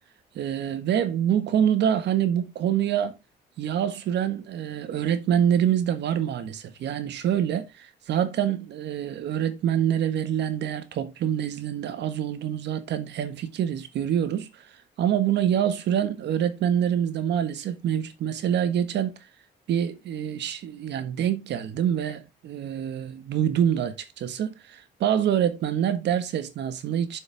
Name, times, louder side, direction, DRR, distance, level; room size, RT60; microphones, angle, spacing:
voice 1, 0.3-3.2 3.6-14.6 15.0-19.1 19.7-27.2, right 9 dB, 80° right, 1.4 m, -26 dB
7.2 x 6.6 x 3.3 m
cardioid pair, 110°, 18 cm